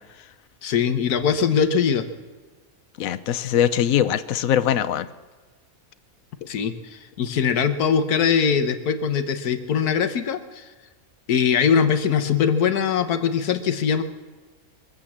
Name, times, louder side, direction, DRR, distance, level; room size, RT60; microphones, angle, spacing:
voice 1, 0.6-2.1 6.5-10.7 11.3-14.0, left 7 dB, 90° left, 10 dB, 1.5 m, -21 dB
voice 2, 3.0-5.1, left 10 dB, 70° left, 13 dB, 1.0 m, -22 dB
23.0 x 8.0 x 7.3 m, 1.3 s
omnidirectional pair, 1.6 m